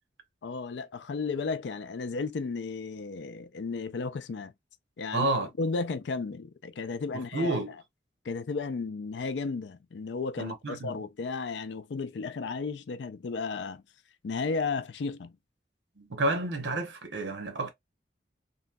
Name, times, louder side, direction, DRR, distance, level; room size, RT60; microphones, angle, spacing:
voice 1, 0.4-4.5 5.0-5.3 5.6-7.6 8.2-13.8 14.2-15.4, left 4 dB, 85° left, 0.4 m, -34 dB
voice 2, 5.1-5.5 7.1-7.7 10.4-11.0 16.0-17.7, right 2 dB, 90° right, 0.9 m, -30 dB
3.0 x 2.6 x 2.2 m
head